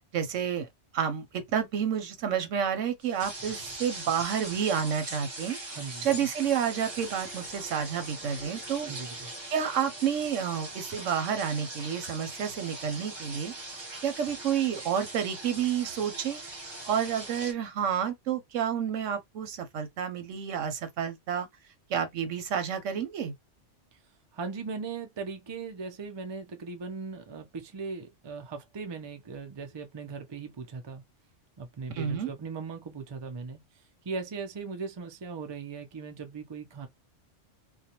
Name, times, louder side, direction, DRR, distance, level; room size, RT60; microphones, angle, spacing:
voice 1, 0.1-0.7 0.9-5.6 6.0-8.9 9.5-13.5 14.0-16.4 16.8-21.5 21.9-23.3 31.9-32.3, right 8 dB, 85° right, 1.1 m, -30 dB
sound 1, 3.0-17.5, right 2 dB, 25° right, 0.8 m, -41 dB
voice 2, 5.7-6.1 8.9-9.3 24.3-31.0 31.6-33.6 34.0-36.9, right 4 dB, 40° right, 0.3 m, -38 dB
2.5 x 2.2 x 2.8 m
omnidirectional pair, 1.3 m